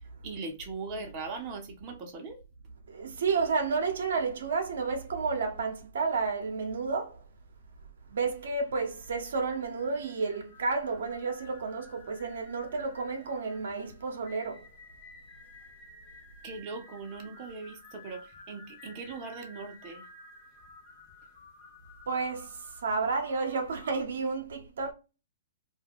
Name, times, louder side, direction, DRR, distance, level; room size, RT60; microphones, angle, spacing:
voice 1, 0.2-2.4 16.4-20.0, right 4 dB, 30° right, 0.7 m, -40 dB
voice 2, 2.9-7.2 8.1-14.7 22.1-24.9, right 4 dB, 70° right, 0.7 m, -31 dB
sound 1, 8.4-24.0, left 2 dB, 35° left, 0.7 m, -54 dB
2.3 x 2.2 x 3.4 m
hypercardioid pair, 135°, 0 cm